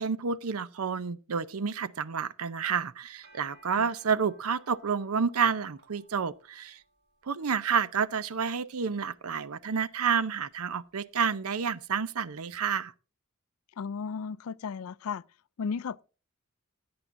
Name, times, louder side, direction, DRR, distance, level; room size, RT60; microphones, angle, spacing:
voice 1, 0.0-6.8 7.2-12.9, right 6 dB, 85° right, 0.6 m, -29 dB
sound 1, 3.1-12.4, right 1 dB, 50° right, 2.6 m, -62 dB
voice 2, 13.8-15.2 15.6-16.0, left 5 dB, 75° left, 0.4 m, -34 dB
17.0 x 8.7 x 2.6 m
head